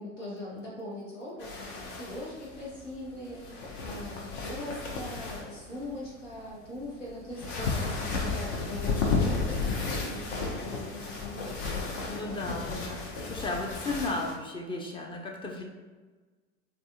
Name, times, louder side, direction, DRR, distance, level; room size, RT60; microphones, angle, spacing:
voice 1, 0.0-11.7, left 1 dB, 90° left, -5 dB, 1.0 m, -41 dB
sound 1, 1.4-14.3, left 4 dB, 60° left, 0.8 m, -33 dB
voice 2, 12.0-15.6, left 2 dB, 15° left, 1 dB, 0.4 m, -35 dB
3.3 x 2.3 x 2.7 m, 1.3 s
hypercardioid pair, 80°, 36 cm